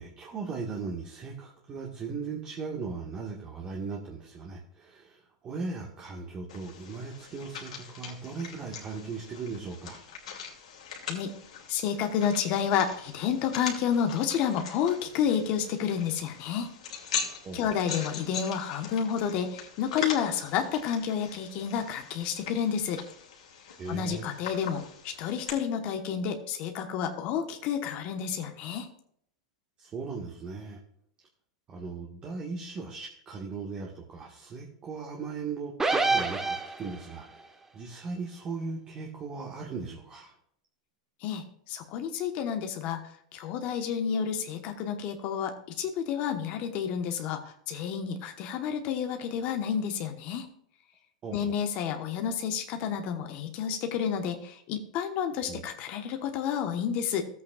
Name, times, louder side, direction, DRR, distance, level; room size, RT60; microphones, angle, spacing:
voice 1, 0.0-10.0 17.4-17.7 23.8-24.3 29.8-30.8 31.7-37.5 37.7-40.3 51.2-51.6 55.5-55.6, right 4 dB, 30° right, -1 dB, 1.5 m, -38 dB
sound 1, 6.5-25.5, left 6 dB, 85° left, 2.6 m, -41 dB
voice 2, 11.7-16.7 17.2-23.0 23.9-28.9 41.2-50.5 51.3-57.3, left 8 dB, 50° left, 5 dB, 1.1 m, -30 dB
sound 2, 35.8-37.2, right 3 dB, 15° right, 1.0 m, -27 dB
14.0 x 8.3 x 2.4 m, 0.67 s
hypercardioid pair, 110°, 3 cm